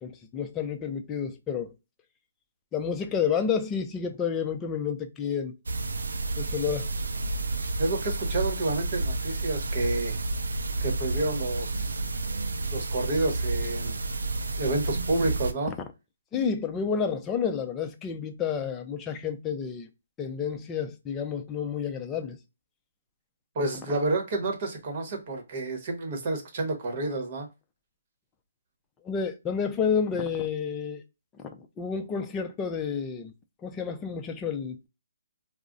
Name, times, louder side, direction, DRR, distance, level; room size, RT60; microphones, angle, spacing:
voice 1, 0.0-1.7 2.7-5.6 6.4-6.9 16.3-19.9 20.2-22.4 29.0-31.0 31.8-33.3 33.6-34.9, left 6 dB, 15° left, 0.5 m, -30 dB
sound 1, 5.7-15.5, right 2 dB, 80° right, 0.4 m, -30 dB
voice 2, 7.8-10.2 10.8-11.8 12.7-14.0 14.6-15.7 23.5-27.5, right 2 dB, 40° right, 1.0 m, -29 dB
2.3 x 2.0 x 3.8 m
hypercardioid pair, 145°, 0 cm